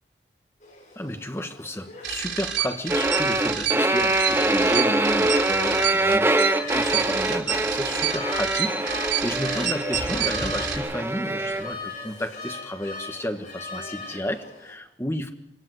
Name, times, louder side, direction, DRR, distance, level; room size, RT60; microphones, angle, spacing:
sound 1, 0.6-14.7, left 3 dB, 45° left, 6.9 m, -40 dB
voice 1, 0.9-15.3, left 1 dB, 15° left, 6 dB, 1.5 m, -32 dB
sound 2, 2.0-10.8, right 9 dB, 85° right, 5.0 m, -28 dB
sound 3, 2.9-11.7, right 2 dB, 15° right, 0.9 m, -24 dB
26.0 x 17.5 x 8.0 m, 0.78 s
head